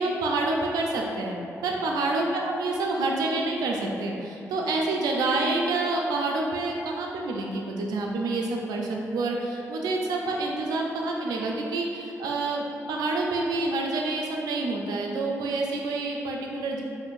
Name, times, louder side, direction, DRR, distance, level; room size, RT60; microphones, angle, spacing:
voice 1, 0.0-1.4 1.6-16.8, right 2 dB, 85° right, 0 dB, 0.4 m, -28 dB
4.4 x 2.5 x 2.5 m, 2.8 s
supercardioid pair, 45°, 6 cm